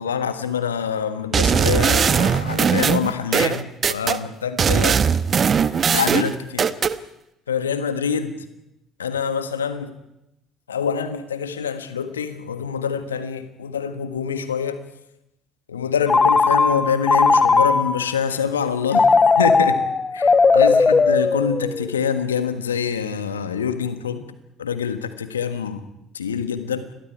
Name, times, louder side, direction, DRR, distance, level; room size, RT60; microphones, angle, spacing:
voice 1, 0.0-5.0 5.9-6.7 7.5-8.4 9.0-9.9 10.7-14.8 15.7-19.8 20.1-24.2 24.6-25.8 26.1-26.9, left 7 dB, 85° left, 10 dB, 1.6 m, -25 dB
sound 1, 1.3-4.2 4.6-7.0, right 6 dB, 40° right, 1.2 m, -19 dB
Telephone, 16.1-18.1 18.9-22.0, left 4 dB, 25° left, 1.3 m, -17 dB
29.5 x 22.5 x 4.7 m, 0.88 s
figure-of-eight pair, 55°, 0 cm